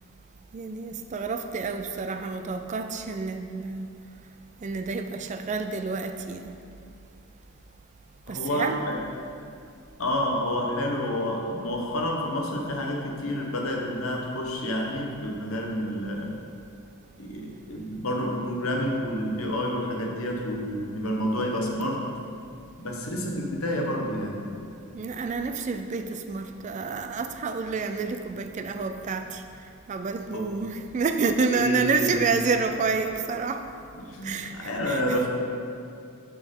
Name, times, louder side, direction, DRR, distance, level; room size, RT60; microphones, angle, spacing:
voice 1, 0.5-3.9 4.6-6.5 8.3-8.8 24.9-29.4 29.9-33.6 34.2-35.2, right 4 dB, 35° right, 7 dB, 0.3 m, -29 dB
voice 2, 8.3-9.0 10.0-16.3 17.2-22.0 22.8-24.5 30.3-30.4 31.6-32.1 34.0-35.3, equal, 70° left, 0 dB, 1.0 m, -29 dB
6.9 x 6.0 x 3.7 m, 2.5 s
head